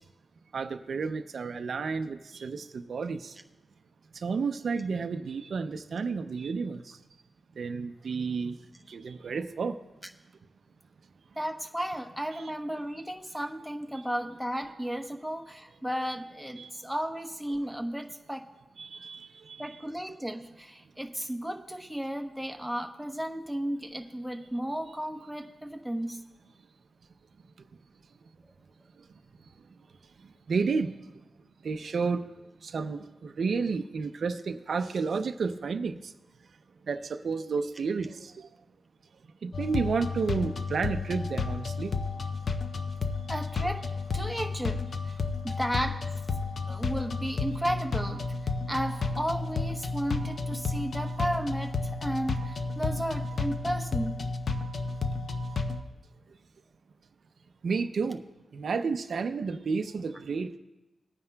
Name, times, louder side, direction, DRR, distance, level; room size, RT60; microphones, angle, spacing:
voice 1, 0.5-3.4 4.1-7.0 7.6-8.6 8.9-9.8 12.3-12.4 16.6-16.7 18.8-19.8 29.0-29.1 30.2-31.2 31.6-32.3 32.6-36.1 36.9-38.5 39.4-41.9 57.6-58.2 58.5-60.6, right 5 dB, 65° right, 8 dB, 0.5 m, -31 dB
voice 2, 11.4-18.4 19.6-26.2 43.3-43.9 44.1-45.1 45.4-46.0 46.7-48.2 48.7-54.3, equal, ahead, 2 dB, 0.9 m, -34 dB
sound 1, 39.5-55.8, left 4 dB, 60° left, 0.7 m, -32 dB
19.5 x 9.4 x 2.3 m, 1.0 s
wide cardioid pair, 90°, 0 cm